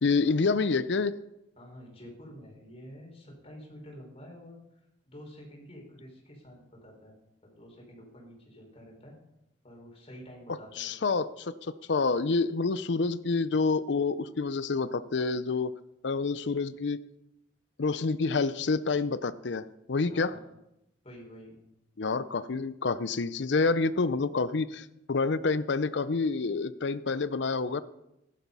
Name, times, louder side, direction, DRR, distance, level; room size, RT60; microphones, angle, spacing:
voice 1, 0.0-1.1 10.5-15.7 16.0-17.0 17.8-20.3 22.0-27.8, left 4 dB, 65° left, 14 dB, 0.6 m, -28 dB
voice 2, 1.6-4.8 5.1-7.1 7.4-9.2 9.6-10.9 20.1-20.4 21.0-21.5, equal, 35° left, -1 dB, 5.0 m, -49 dB
15.5 x 12.0 x 5.4 m, 0.86 s
head